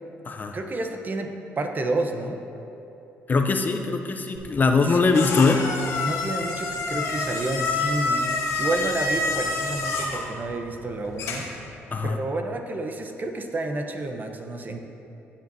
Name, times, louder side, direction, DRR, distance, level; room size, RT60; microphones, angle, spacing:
voice 1, 0.5-2.4 4.8-5.2 6.0-11.5 12.0-14.8, right 2 dB, 40° right, 5 dB, 0.9 m, -30 dB
voice 2, 3.3-5.7 11.9-12.2, left 4 dB, 35° left, 5 dB, 0.6 m, -21 dB
sound 1, 4.4-11.6, left 3 dB, 75° left, 1.3 m, -28 dB
15.5 x 7.4 x 2.8 m, 2.9 s
cardioid pair, 75°, 5 cm